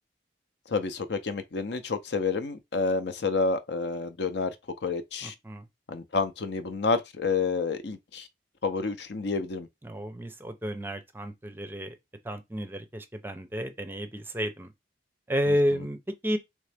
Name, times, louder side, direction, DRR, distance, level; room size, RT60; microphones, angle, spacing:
voice 1, 0.7-4.5 4.8-5.3 5.9-8.3 8.6-9.7 15.5-15.6, left 4 dB, 65° left, 0.6 m, -29 dB
voice 2, 5.2-5.7 9.8-11.9 12.2-14.7 15.3-16.0 16.2-16.4, equal, 10° right, 0.5 m, -31 dB
3.7 x 3.1 x 3.4 m
head